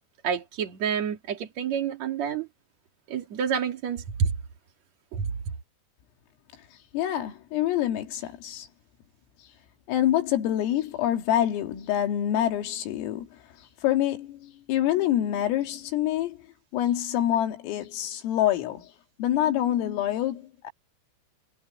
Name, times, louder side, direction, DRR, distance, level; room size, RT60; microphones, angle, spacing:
voice 1, 0.2-2.5 3.1-4.3 5.1-5.2, right 7 dB, 50° right, 2.2 m, -28 dB
voice 2, 6.9-8.7 9.9-13.4 13.8-16.4 16.7-18.9 19.2-20.7, left 12 dB, 80° left, 4.8 m, -26 dB
omnidirectional pair, 6.0 m